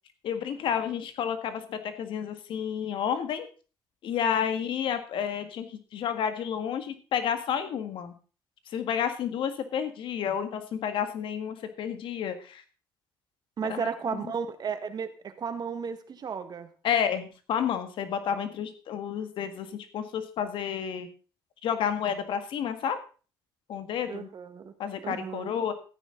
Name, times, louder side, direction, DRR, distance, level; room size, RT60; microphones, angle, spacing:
voice 1, 0.2-3.4 4.0-8.1 8.7-12.6 13.7-14.2 16.8-21.1 21.6-23.0 23.7-24.3 24.8-25.7, left 8 dB, 70° left, 9 dB, 1.9 m, -30 dB
voice 2, 13.6-16.7 24.1-24.7 25.0-25.5, right 6 dB, 50° right, 9 dB, 1.7 m, -34 dB
14.0 x 9.8 x 3.9 m, 0.36 s
cardioid pair, 85°, 9 cm